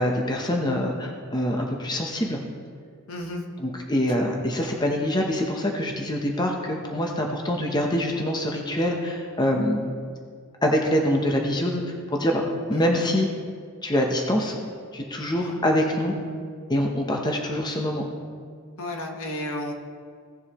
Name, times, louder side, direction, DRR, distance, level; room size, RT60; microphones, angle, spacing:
voice 1, 0.0-2.4 3.6-9.8 10.6-12.4 12.7-13.3 13.8-14.6 14.9-16.1 16.7-18.0, equal, 20° left, 1 dB, 0.8 m, -25 dB
voice 2, 3.1-3.4 12.7-12.9 15.4-15.6 18.8-19.7, left 1 dB, 70° left, 2 dB, 1.2 m, -33 dB
17.0 x 7.1 x 3.0 m, 2.1 s
head